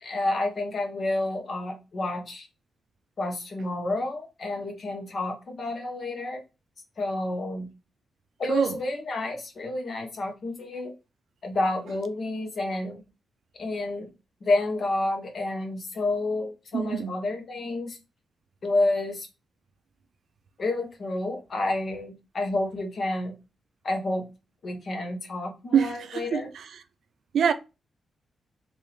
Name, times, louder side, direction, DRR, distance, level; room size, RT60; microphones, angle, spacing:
voice 1, 0.0-2.5 3.2-6.4 7.0-7.7 8.4-10.9 11.4-13.0 13.6-14.1 14.4-18.0 18.6-19.3 20.6-23.3 23.8-24.3 24.6-26.5, left 2 dB, 40° left, 0.9 m, -29 dB
voice 2, 16.7-17.2 25.7-26.7 27.3-27.5, right 7 dB, 65° right, 0.4 m, -25 dB
3.3 x 2.6 x 3.1 m
wide cardioid pair, 170°, 0 cm